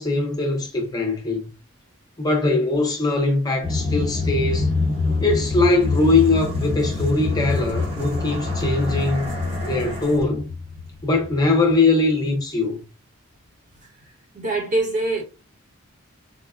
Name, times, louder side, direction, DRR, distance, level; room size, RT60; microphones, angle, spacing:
voice 1, 0.0-1.5 2.2-4.7 5.2-9.4 9.6-10.5 11.0-12.8, left 3 dB, 20° left, 0.5 m, -21 dB
sound 1, 3.6-11.8, left 3 dB, 75° right, 1.5 m, -25 dB
voice 2, 14.3-15.2, right 2 dB, 40° right, 0.9 m, -23 dB
4.1 x 2.0 x 2.4 m
head